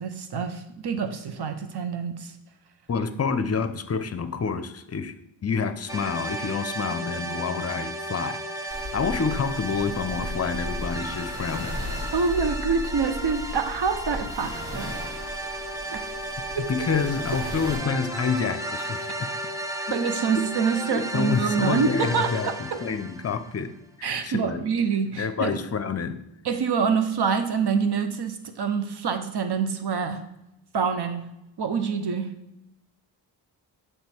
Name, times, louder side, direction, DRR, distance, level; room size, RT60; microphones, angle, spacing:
voice 1, 0.0-2.3 12.1-14.9 15.9-16.0 16.5-16.7 19.9-22.8 24.0-25.6 26.4-30.3 30.7-31.3 31.6-32.3, right 5 dB, 55° right, 8 dB, 0.9 m, -26 dB
voice 2, 2.9-5.1 5.4-11.8 16.7-19.4 19.9-20.0 20.9-24.7 25.2-26.2, left 5 dB, 30° left, 11 dB, 0.6 m, -28 dB
sound 1, 5.9-23.7, right 1 dB, 5° right, 0.8 m, -34 dB
sound 2, 8.7-17.8, left 1 dB, 80° right, 2.3 m, -36 dB
6.8 x 3.4 x 4.4 m, 0.89 s
supercardioid pair, 50°, 48 cm